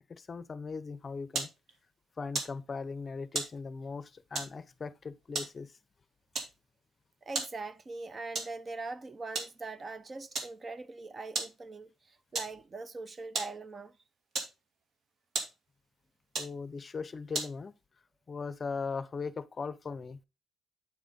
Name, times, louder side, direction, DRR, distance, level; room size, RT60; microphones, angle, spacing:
voice 1, 0.1-1.5 2.2-5.7 16.4-17.7 18.3-20.2, left 4 dB, 35° left, 0.6 m, -39 dB
sound 1, 0.9-17.8, right 3 dB, 60° right, 2.1 m, -41 dB
voice 2, 7.2-14.0, right 3 dB, 35° right, 0.7 m, -42 dB
8.6 x 4.9 x 4.0 m
cardioid pair, 90°, 0 cm